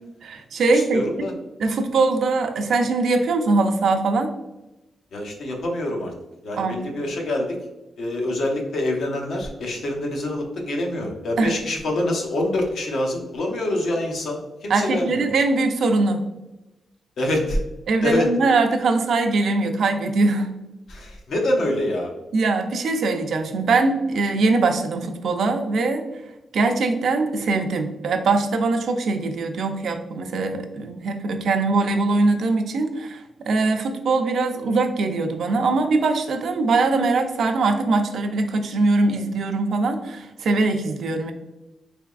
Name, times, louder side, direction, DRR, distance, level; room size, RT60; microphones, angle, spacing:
voice 1, 0.2-1.0 1.6-4.3 6.5-6.8 11.4-11.6 14.7-16.3 17.9-20.5 22.3-26.1 26.5-41.3, right 3 dB, 70° right, 5 dB, 0.5 m, -22 dB
voice 2, 0.7-1.3 5.1-6.1 6.4-7.6 8.0-15.2 17.2-17.6 18.0-18.3 20.9-22.1, left 1 dB, 75° left, 1 dB, 0.8 m, -25 dB
3.9 x 3.4 x 2.4 m, 1.0 s
wide cardioid pair, 125°, 0 cm